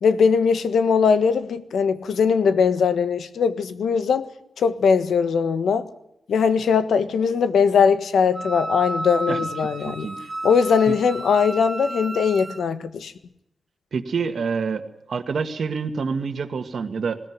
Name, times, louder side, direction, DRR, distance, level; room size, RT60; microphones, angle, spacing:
voice 1, 0.0-4.3 4.6-5.9 6.3-10.1 10.4-13.1, left 6 dB, 90° left, 1.4 m, -20 dB
Wind instrument woodwind instrument, 8.3-12.6, right 2 dB, 35° right, 2.6 m, -32 dB
voice 2, 9.8-10.2 10.9-11.0 13.9-14.8 15.1-17.2, right 5 dB, 65° right, 1.8 m, -27 dB
20.5 x 17.0 x 9.5 m
wide cardioid pair, 95°, 0 cm